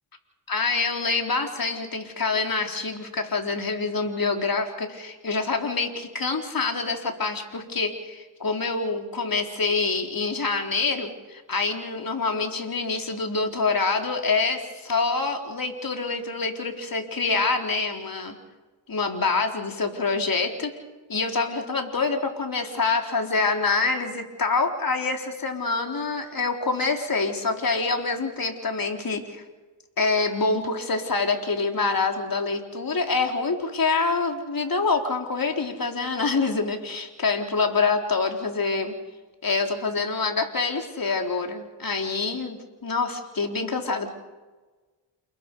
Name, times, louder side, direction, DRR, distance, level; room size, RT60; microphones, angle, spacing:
voice 1, 0.5-18.3 18.9-20.7 21.1-29.4 30.0-38.9 39.4-44.1, left 4 dB, 45° left, 3 dB, 4.0 m, -26 dB
29.0 x 21.0 x 5.5 m, 1.3 s
cardioid pair, 60°, 49 cm